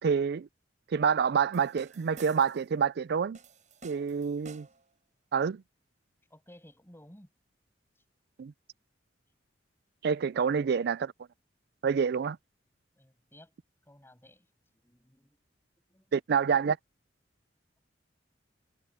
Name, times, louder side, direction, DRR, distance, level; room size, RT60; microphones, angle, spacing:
voice 1, 0.0-0.5 0.9-3.4 3.8-4.7 5.3-5.6 8.4-8.5 10.0-11.1 11.8-12.4 16.1-16.8, right 6 dB, 60° right, 0.4 m, -27 dB
sound 1, 1.5-2.7 3.3-4.9, right 4 dB, 40° right, 5.6 m, -52 dB
voice 2, 4.1-4.5 6.3-7.3 10.4-10.5 12.1-12.2 12.9-13.5 13.9-14.5 14.7-15.4 15.9-16.2, left 1 dB, 15° left, 6.6 m, -56 dB
head